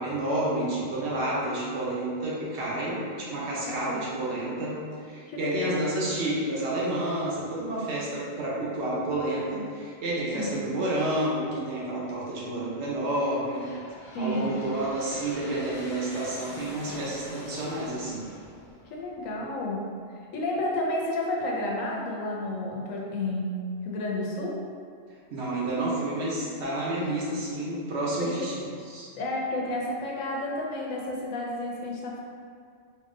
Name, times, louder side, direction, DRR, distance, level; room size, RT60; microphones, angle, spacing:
voice 1, 0.0-13.7 14.2-18.3 25.3-28.6 28.8-29.1, right 1 dB, 60° right, -6 dB, 1.0 m, -30 dB
voice 2, 3.6-4.2 5.3-5.8 10.3-10.6 14.1-14.5 18.9-19.8 20.3-23.5 23.8-24.5 28.2-28.5 29.1-32.2, left 1 dB, 85° left, -2 dB, 1.1 m, -31 dB
Aircraft, 10.8-11.4 12.1-19.6, left 1 dB, 60° left, 0.5 m, -45 dB
4.1 x 2.7 x 2.5 m, 2.2 s
omnidirectional pair, 1.3 m